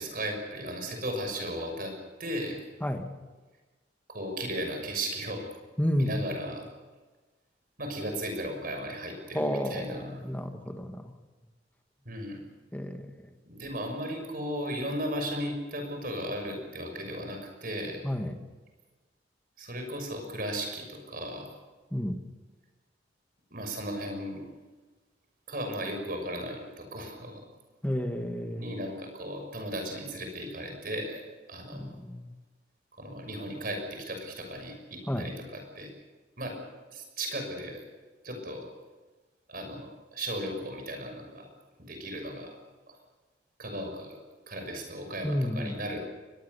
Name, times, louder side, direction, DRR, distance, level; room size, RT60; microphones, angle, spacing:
voice 1, 0.0-1.9 2.2-2.6 4.1-5.5 6.0-6.6 7.8-10.2 12.0-12.4 13.4-18.0 19.6-21.5 23.5-24.4 25.5-27.4 28.6-31.2 31.5-31.9 33.0-35.9 36.4-36.6 36.9-37.8 38.2-38.7 39.5-41.5 41.9-42.5 42.9-43.0 43.6-44.2 44.5-46.0, right 1 dB, 50° right, 4 dB, 6.3 m, -36 dB
voice 2, 5.8-6.2 9.3-11.1 12.7-13.0 18.0-18.4 21.9-22.2 27.8-28.7 31.7-32.3 35.1-35.3 45.2-45.7, equal, 10° left, 6 dB, 1.6 m, -31 dB
23.0 x 21.0 x 6.8 m, 1.3 s
head